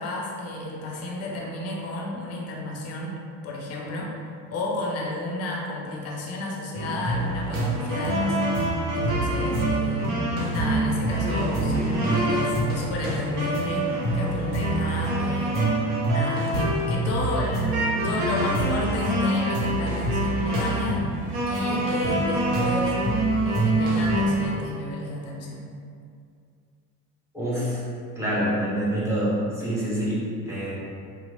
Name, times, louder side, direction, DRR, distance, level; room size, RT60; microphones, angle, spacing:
voice 1, 0.0-4.1 4.5-8.6 8.9-10.2 10.5-15.6 16.1-21.0 21.5-22.9 23.5-25.7, left 2 dB, 35° left, -2 dB, 0.5 m, -32 dB
sound 1, 6.7-24.4, right 1 dB, 60° right, 0.8 m, -25 dB
voice 2, 27.3-27.8 28.1-30.7, equal, 5° right, -10 dB, 0.9 m, -26 dB
2.9 x 2.0 x 2.4 m, 2.3 s
figure-of-eight pair, 60°, 46 cm